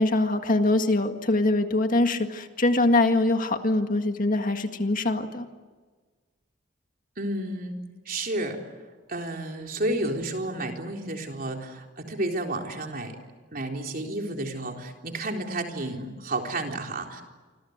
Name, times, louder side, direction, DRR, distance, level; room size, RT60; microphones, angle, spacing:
voice 1, 0.0-5.5, left 2 dB, 45° left, 6 dB, 1.9 m, -23 dB
voice 2, 7.2-7.8 8.1-8.6 9.1-13.2 13.5-17.2, right 1 dB, 50° right, 2 dB, 4.0 m, -31 dB
29.0 x 25.5 x 8.1 m, 1.4 s
head